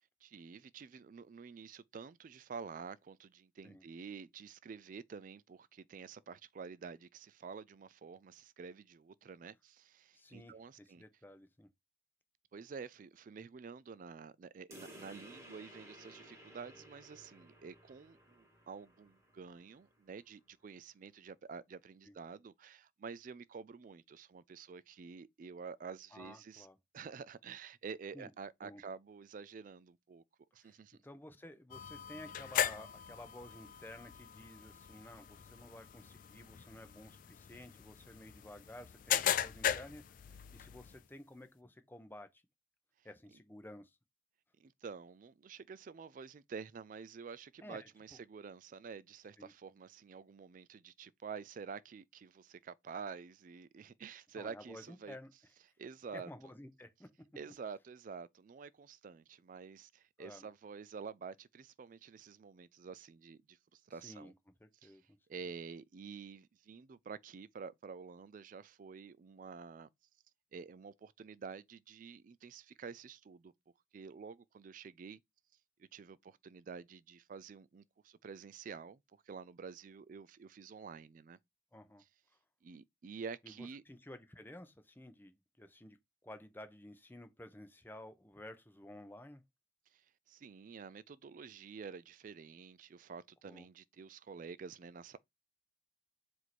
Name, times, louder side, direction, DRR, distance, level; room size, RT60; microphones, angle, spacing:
voice 1, 0.2-11.0 12.5-26.7 26.9-30.2 30.5-31.0 44.6-55.2 55.8-56.3 57.4-64.3 64.8-65.0 65.3-69.9 70.5-73.5 73.9-75.2 75.8-81.4 82.6-83.8 89.9-95.2, right 5 dB, 45° right, 0.3 m, -49 dB
voice 2, 10.1-11.7 22.1-22.2 26.1-26.8 28.1-28.3 28.6-28.8 30.6-40.2 40.5-42.4 43.0-44.0 47.6-47.9 49.4-49.5 54.4-55.3 56.1-57.1 60.2-60.5 64.0-64.3 64.6-65.2 81.7-82.0 83.4-86.0 86.2-89.4 93.4-93.7, left 1 dB, 10° left, 0.6 m, -53 dB
sound 1, 14.7-19.8, right 1 dB, 15° right, 1.5 m, -56 dB
sound 2, 31.7-41.0, left 9 dB, 45° left, 0.3 m, -39 dB
4.6 x 2.6 x 4.2 m
head